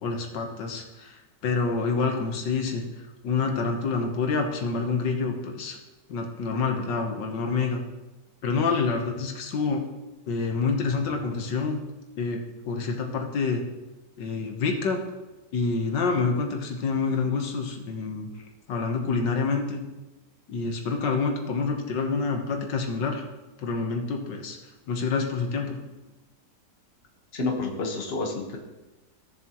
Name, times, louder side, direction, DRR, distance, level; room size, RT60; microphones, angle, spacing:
voice 1, 0.0-2.8 3.2-5.8 6.1-7.8 8.4-9.8 10.3-11.8 12.2-12.4 12.6-13.6 14.2-15.0 15.5-18.3 18.7-19.8 20.5-23.2 23.6-24.6 24.9-25.8, left 4 dB, 85° left, 3 dB, 1.7 m, -27 dB
voice 2, 27.3-28.6, left 3 dB, 40° left, 1 dB, 1.4 m, -29 dB
15.5 x 7.2 x 3.0 m, 1.1 s
omnidirectional pair, 1.9 m